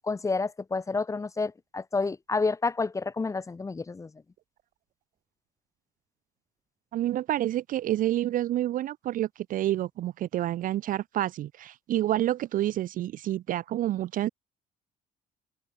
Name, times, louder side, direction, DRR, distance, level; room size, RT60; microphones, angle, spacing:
voice 1, 0.0-4.1, left 4 dB, 20° left, 0.8 m, -29 dB
voice 2, 6.9-14.3, right 13 dB, 55° right, 0.4 m, -28 dB
cardioid pair, 110°, 17 cm